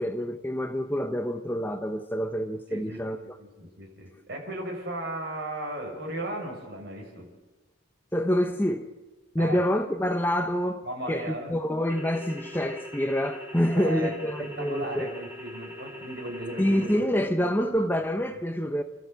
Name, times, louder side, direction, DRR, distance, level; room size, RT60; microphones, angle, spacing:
voice 1, 0.0-3.2 8.1-8.9 9.3-15.1 16.6-18.8, equal, 10° left, 7 dB, 0.8 m, -27 dB
voice 2, 2.7-7.3 9.4-9.6 10.8-11.5 13.7-14.1 14.4-17.1 17.3-17.5 18.3-18.4, right 1 dB, 50° right, 1 dB, 6.2 m, -36 dB
sound 1, 11.9-17.0, left 1 dB, 10° right, 3.0 m, -42 dB
29.5 x 13.5 x 8.0 m, 1.2 s
head